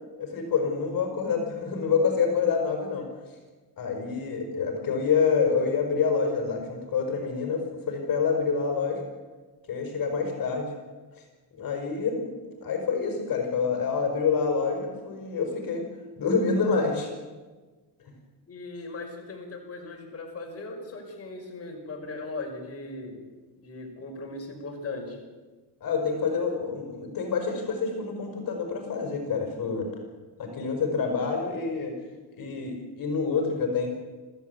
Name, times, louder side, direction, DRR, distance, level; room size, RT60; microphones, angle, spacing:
voice 1, 0.2-3.0 3.8-9.0 9.7-10.6 11.6-12.3 12.6-15.8 16.2-17.1 25.8-29.9 30.4-31.9 32.4-33.9, left 5 dB, 55° left, 3 dB, 5.7 m, -27 dB
voice 2, 18.5-23.2 23.6-25.2, left 2 dB, 35° left, 2 dB, 5.9 m, -38 dB
27.0 x 15.0 x 8.3 m, 1.3 s
cardioid pair, 95°, 42 cm